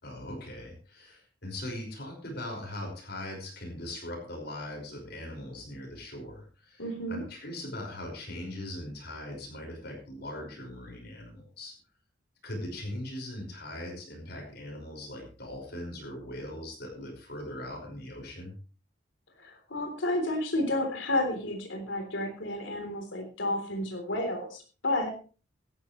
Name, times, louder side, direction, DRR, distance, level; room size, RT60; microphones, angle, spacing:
voice 1, 0.0-11.7 12.4-18.6, left 1 dB, 55° left, 1 dB, 5.6 m, -40 dB
voice 2, 6.8-7.2 19.4-25.1, left 1 dB, 75° left, 4 dB, 3.6 m, -31 dB
17.0 x 13.5 x 3.2 m, 0.36 s
head